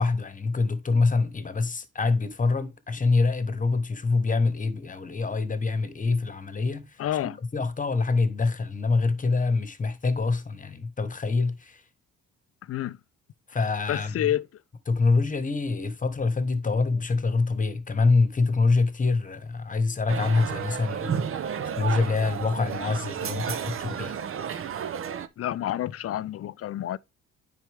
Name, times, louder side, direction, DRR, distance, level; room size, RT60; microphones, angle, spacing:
voice 1, 0.0-11.8 13.5-14.3 14.9-21.3 21.7-24.1, left 3 dB, 25° left, 1.1 m, -25 dB
voice 2, 7.0-7.4 12.6-13.0 13.9-14.5 25.4-27.0, left 12 dB, 50° left, 0.5 m, -29 dB
sound 1, 20.1-25.3, right 8 dB, 45° right, 0.7 m, -32 dB
9.4 x 4.4 x 3.4 m
cardioid pair, 90°, 30 cm